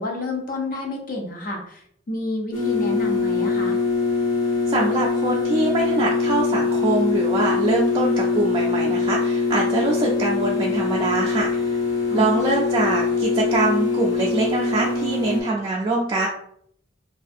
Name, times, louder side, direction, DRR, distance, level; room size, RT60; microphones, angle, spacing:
voice 1, 0.0-3.8 12.1-12.5, left 2 dB, 45° left, 1 dB, 0.5 m, -30 dB
sound 1, 2.5-15.4, left 4 dB, 85° left, 1.0 m, -23 dB
voice 2, 4.7-11.8 12.1-16.3, right 2 dB, 25° right, -4 dB, 0.3 m, -24 dB
2.5 x 2.3 x 2.5 m, 0.68 s
head